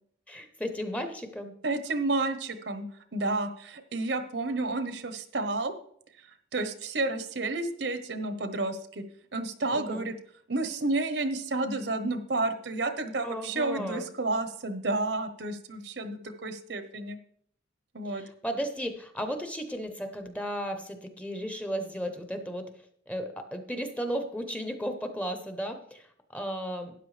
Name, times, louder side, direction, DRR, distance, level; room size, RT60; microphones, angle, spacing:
voice 1, 0.3-1.5 9.7-10.1 13.2-14.1 18.1-22.7 23.1-26.9, equal, 5° left, 7 dB, 0.8 m, -35 dB
voice 2, 1.6-2.9 3.1-5.7 6.5-9.0 9.3-10.1 10.5-17.2 17.9-18.2, right 2 dB, 70° right, 9 dB, 1.0 m, -31 dB
13.0 x 9.6 x 3.3 m, 0.65 s
head